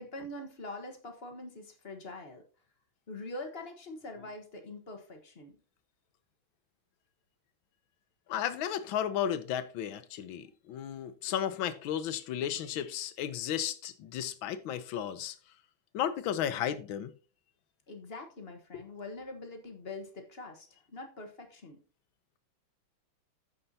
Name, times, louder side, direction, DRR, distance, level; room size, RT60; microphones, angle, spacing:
voice 1, 0.0-2.4 3.1-5.6 17.9-21.8, left 2 dB, 35° left, 1.3 m, -44 dB
voice 2, 8.3-15.3 15.9-17.1 18.7-18.8, left 10 dB, 85° left, 1.5 m, -34 dB
15.0 x 5.6 x 2.7 m
omnidirectional pair, 2.1 m